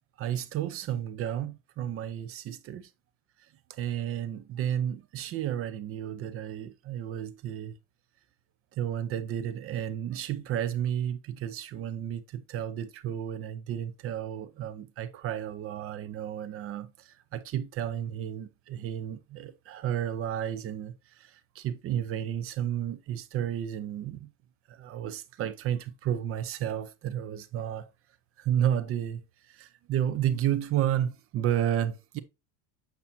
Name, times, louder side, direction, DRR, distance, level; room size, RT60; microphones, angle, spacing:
voice 1, 0.2-2.9 3.7-7.8 8.7-24.3 24.7-27.9 28.4-29.2 29.5-32.2, right 10 dB, 40° right, 0.6 m, -32 dB
7.2 x 5.6 x 2.7 m
supercardioid pair, 130°, 37 cm